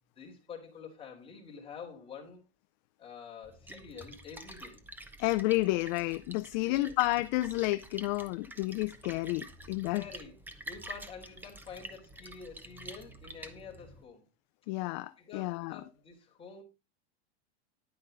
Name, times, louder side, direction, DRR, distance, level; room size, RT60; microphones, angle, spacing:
voice 1, 0.2-2.4 3.0-4.8 6.6-6.9 9.9-10.4 10.7-14.3 15.2-16.6, left 6 dB, 15° left, 3.7 m, -48 dB
Splash splatter, 3.4-14.0, right 1 dB, 5° right, 0.9 m, -48 dB
voice 2, 5.2-10.0 14.7-15.8, left 19 dB, 45° left, 0.5 m, -31 dB
10.5 x 9.7 x 3.9 m
supercardioid pair, 145°, 32 cm